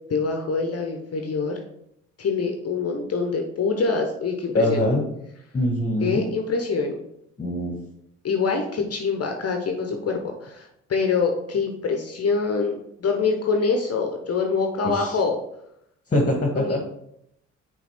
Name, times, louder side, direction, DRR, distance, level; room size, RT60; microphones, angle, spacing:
voice 1, 0.1-1.6 2.2-4.8 6.0-7.0 8.2-15.4 16.6-16.8, left 4 dB, 40° left, 3 dB, 1.0 m, -25 dB
voice 2, 4.5-5.0 5.5-6.2 7.4-7.7 14.9-15.2 16.1-16.8, left 1 dB, 20° left, 1 dB, 1.5 m, -23 dB
5.9 x 4.0 x 4.2 m, 0.76 s
hypercardioid pair, 45°, 36 cm